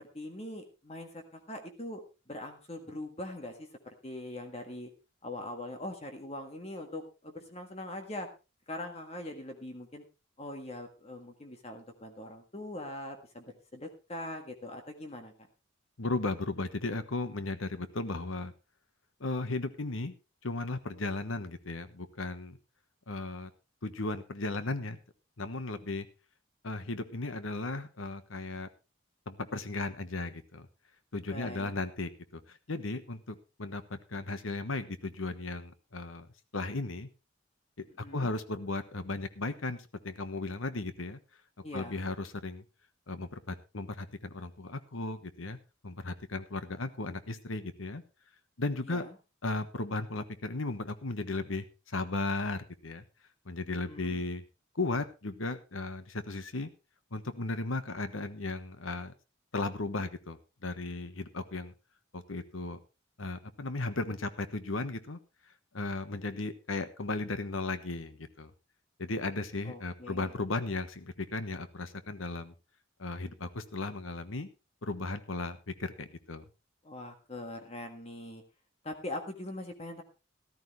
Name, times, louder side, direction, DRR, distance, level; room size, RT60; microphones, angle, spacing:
voice 1, 0.1-2.0 2.3-3.7 4.0-4.9 5.2-8.3 8.7-10.0 10.4-15.3 31.3-31.7 38.0-38.3 41.6-42.0 48.8-49.1 53.9-54.2 69.6-70.3 76.8-78.4 78.8-80.0, left 1 dB, 30° left, 5 dB, 1.7 m, -42 dB
voice 2, 16.0-18.5 19.2-20.1 20.4-22.6 23.1-23.5 23.8-25.0 25.4-26.1 26.6-28.7 29.3-30.7 31.1-32.1 32.5-36.3 36.5-37.1 37.8-41.2 41.7-42.6 43.1-45.6 45.8-48.0 48.6-49.1 49.4-53.0 53.5-54.4 54.7-56.7 57.1-59.1 59.5-61.7 62.1-62.8 63.2-65.2 65.7-68.5 69.0-72.5 73.0-74.5 74.8-76.4, left 2 dB, 90° left, 11 dB, 1.2 m, -36 dB
14.0 x 13.5 x 3.2 m, 0.29 s
head